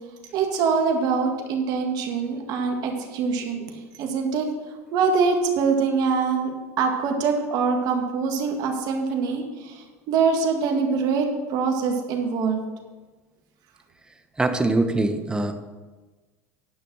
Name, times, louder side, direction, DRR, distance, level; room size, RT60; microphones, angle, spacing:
voice 1, 0.3-3.6 4.0-4.5 4.9-12.6, right 5 dB, 55° right, 3 dB, 1.9 m, -24 dB
voice 2, 14.4-15.5, right 2 dB, 10° right, 7 dB, 1.1 m, -22 dB
10.0 x 5.9 x 6.2 m, 1.3 s
supercardioid pair, 100°, 8 cm